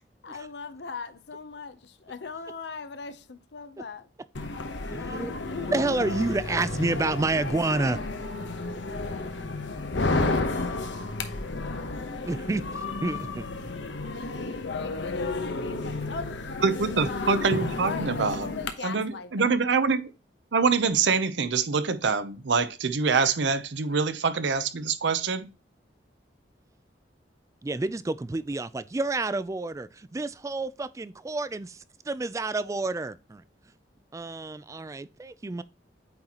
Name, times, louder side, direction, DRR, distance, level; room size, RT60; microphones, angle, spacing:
voice 1, 0.2-4.1 14.1-16.5 17.7-19.6, left 4 dB, 65° left, 0.7 m, -40 dB
sound 1, 4.3-18.7, left 3 dB, 85° left, 1.0 m, -32 dB
voice 2, 4.9-8.0 12.2-12.6 13.0-13.5 27.6-33.4 34.1-35.6, right 3 dB, 15° right, 0.3 m, -29 dB
voice 3, 16.6-18.5 18.8-20.1 20.5-25.5, right 5 dB, 80° right, 0.7 m, -25 dB
8.7 x 4.1 x 2.9 m
head